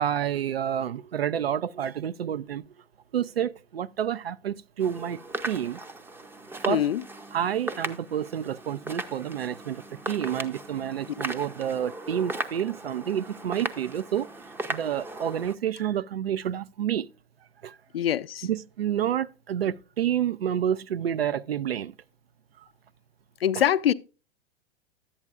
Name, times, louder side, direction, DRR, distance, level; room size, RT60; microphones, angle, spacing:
voice 1, 0.0-2.6 3.1-5.2 5.5-5.8 6.6-6.9 7.3-14.3 14.7-17.1 17.6-17.7 18.4-21.9, right 9 dB, 85° right, 0.5 m, -29 dB
sound 1, 4.8-15.6, right 2 dB, 10° right, 0.5 m, -37 dB
voice 2, 6.7-7.0 17.9-18.5 23.4-23.9, left 10 dB, 80° left, 0.5 m, -23 dB
11.0 x 8.6 x 2.3 m
hypercardioid pair, 105°, 29 cm